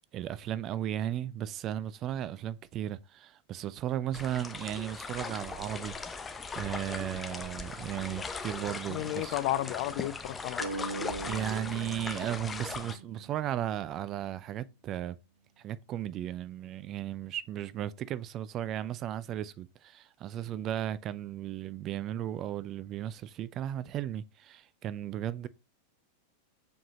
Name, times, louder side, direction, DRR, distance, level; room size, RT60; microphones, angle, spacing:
voice 1, 0.1-5.9 6.6-9.4 11.3-15.2 15.6-25.5, right 11 dB, 35° right, 0.4 m, -35 dB
sound 1, 4.1-13.0, left 4 dB, 15° left, 0.8 m, -39 dB
voice 2, 8.9-10.7, left 15 dB, 45° left, 0.5 m, -32 dB
sound 2, 10.6-13.8, right 3 dB, 75° right, 1.2 m, -41 dB
7.1 x 4.8 x 2.9 m
figure-of-eight pair, 90°, 0 cm